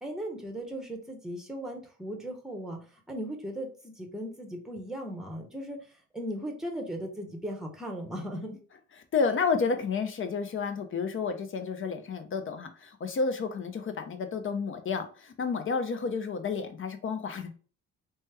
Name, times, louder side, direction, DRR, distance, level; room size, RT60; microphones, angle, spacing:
voice 1, 0.0-2.8 3.1-5.8 6.1-8.6, equal, ahead, 0.8 m, -37 dB
voice 2, 9.1-17.5, left 5 dB, 45° left, 0.6 m, -31 dB
3.1 x 2.1 x 3.3 m
cardioid pair, 90°, 30 cm